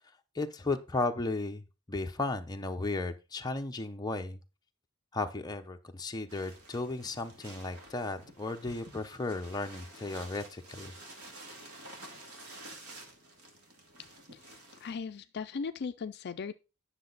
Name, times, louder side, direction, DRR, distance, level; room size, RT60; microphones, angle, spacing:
voice 1, 0.3-4.4 5.1-10.9, left 3 dB, 20° left, 0.7 m, -35 dB
sound 1, 6.3-14.9, right 2 dB, 75° right, 2.2 m, -50 dB
voice 2, 14.0-16.5, left 5 dB, 50° left, 0.4 m, -39 dB
9.9 x 6.5 x 4.0 m
head